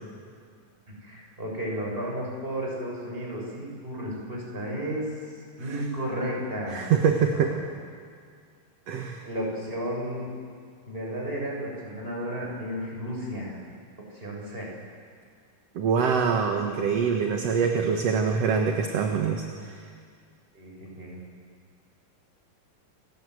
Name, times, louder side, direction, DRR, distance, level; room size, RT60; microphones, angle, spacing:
voice 1, 1.0-6.9 7.3-7.5 9.2-10.3 10.9-13.6 14.1-14.7 20.5-21.2, equal, 15° right, -2 dB, 6.7 m, -33 dB
voice 2, 6.7-7.5 8.9-9.2 15.8-19.8, right 6 dB, 55° right, 3 dB, 2.2 m, -24 dB
29.0 x 19.0 x 8.0 m, 2.1 s
omnidirectional pair, 4.0 m